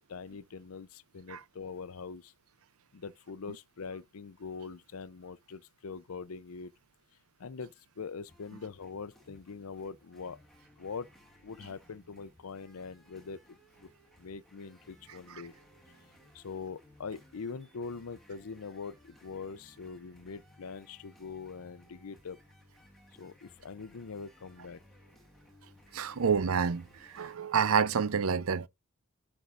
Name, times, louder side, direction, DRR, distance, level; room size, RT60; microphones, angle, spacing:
voice 1, 0.0-2.3 2.9-6.7 7.4-10.4 10.8-11.1 11.4-13.9 14.2-15.5 16.3-22.4 23.2-24.8, left 5 dB, 85° left, 0.6 m, -43 dB
sound 1, 8.3-27.4, left 1 dB, ahead, 2.2 m, -61 dB
voice 2, 25.9-28.7, right 6 dB, 75° right, 0.6 m, -28 dB
11.0 x 6.4 x 2.5 m
head